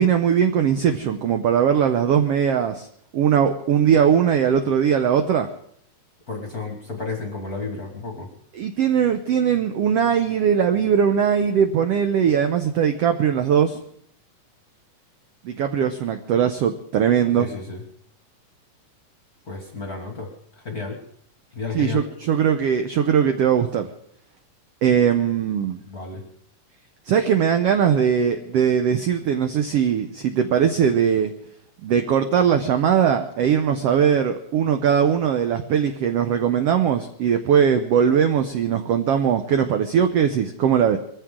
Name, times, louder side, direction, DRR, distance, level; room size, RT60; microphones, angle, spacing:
voice 1, 0.0-2.9 3.1-5.5 8.6-13.8 15.4-17.5 21.7-23.9 24.8-25.8 27.1-31.3 31.8-41.0, right 8 dB, 80° right, 8 dB, 1.4 m, -20 dB
voice 2, 6.3-8.3 17.4-17.8 19.5-21.0 21.5-22.1 25.8-26.3, left 4 dB, 40° left, 3 dB, 1.3 m, -32 dB
22.0 x 15.0 x 3.7 m, 0.67 s
omnidirectional pair, 3.8 m